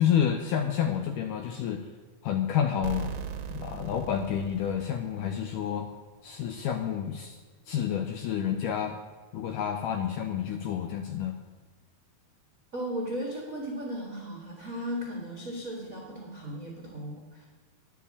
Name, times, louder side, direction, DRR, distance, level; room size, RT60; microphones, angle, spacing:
voice 1, 0.0-1.9 2.2-3.1 3.5-5.9 6.2-7.4 7.7-9.0 9.3-11.4, left 9 dB, 85° left, 6 dB, 1.9 m, -29 dB
sound 1, 2.8-5.5, right 6 dB, 75° right, 1.9 m, -38 dB
voice 2, 12.7-17.4, equal, 55° right, -2 dB, 0.8 m, -36 dB
9.6 x 7.2 x 8.4 m, 1.3 s
omnidirectional pair, 4.4 m